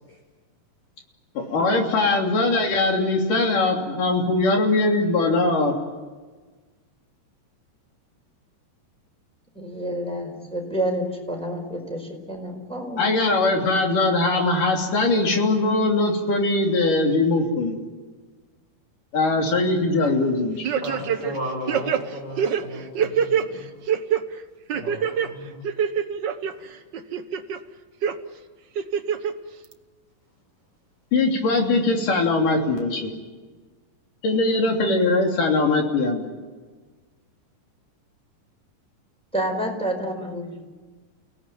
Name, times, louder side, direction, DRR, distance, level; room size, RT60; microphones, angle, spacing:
voice 1, 1.3-5.7 13.0-17.8 19.1-20.6 31.1-33.1 34.2-36.2, left 2 dB, 75° left, 2 dB, 4.8 m, -21 dB
voice 2, 9.5-13.1 39.3-40.6, right 1 dB, ahead, 0 dB, 4.8 m, -29 dB
sound 1, 20.6-21.4 21.7-23.5 23.9-24.2 24.7-25.3 25.6-26.5 26.9-27.6 28.0-28.1 28.8-29.3 29.7-29.8, right 8 dB, 70° right, 1.0 m, -24 dB
voice 3, 20.8-23.7 24.7-25.6, equal, 30° left, -1 dB, 5.8 m, -34 dB
30.0 x 18.0 x 9.2 m, 1.4 s
omnidirectional pair, 3.7 m